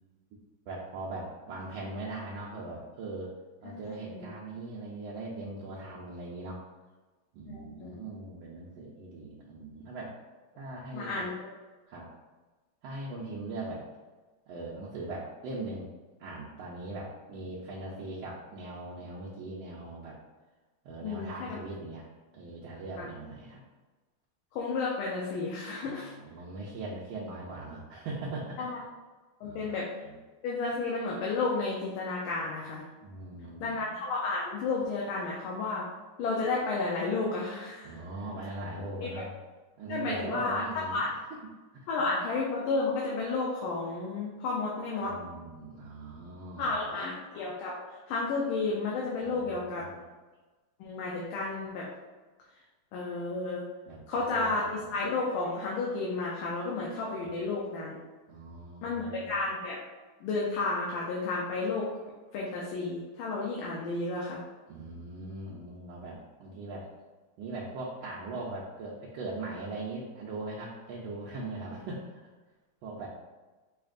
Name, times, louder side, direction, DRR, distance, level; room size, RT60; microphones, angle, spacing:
voice 1, 0.7-3.3 3.6-6.6 7.3-10.1 10.6-11.3 11.9-12.1 12.8-13.8 14.5-15.9 16.2-20.2 20.8-22.0 22.3-23.6 25.8-28.7 29.4-29.7 30.0-30.2 33.0-33.8 37.8-39.3 39.8-41.0 41.7-41.9 45.0-47.0 49.2-50.0 53.9-54.9 57.2-57.5 58.3-59.4 64.7-66.9 67.4-72.2 72.8-73.1, right 2 dB, 75° right, -6 dB, 1.4 m, -40 dB
voice 2, 7.5-7.9 10.9-11.3 21.0-21.6 23.0-23.1 24.5-26.1 28.6-28.8 29.4-29.9 30.4-32.8 33.6-35.9 36.2-38.0 39.0-39.3 39.9-40.6 40.9-41.1 41.9-45.2 46.6-49.9 50.8-51.9 52.9-53.7 54.1-58.0 58.8-59.8 60.2-61.9 62.3-64.4, left 3 dB, 80° left, -3 dB, 1.5 m, -32 dB
5.1 x 2.8 x 2.4 m, 1.3 s
omnidirectional pair, 2.3 m